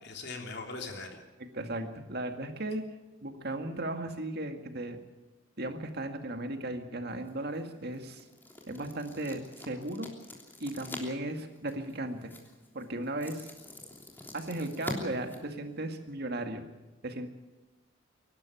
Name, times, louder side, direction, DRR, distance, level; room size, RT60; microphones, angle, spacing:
voice 1, 0.0-1.2, left 3 dB, 60° left, 2 dB, 3.5 m, -40 dB
voice 2, 1.4-2.8 3.2-5.0 5.6-8.2 8.7-10.1 10.6-12.3 12.7-13.5 14.3-16.6 17.0-17.3, right 1 dB, 55° right, 6 dB, 2.0 m, -36 dB
sound 1, 7.1-16.1, left 1 dB, 10° left, 3.2 m, -46 dB
24.0 x 12.0 x 9.2 m, 1.1 s
head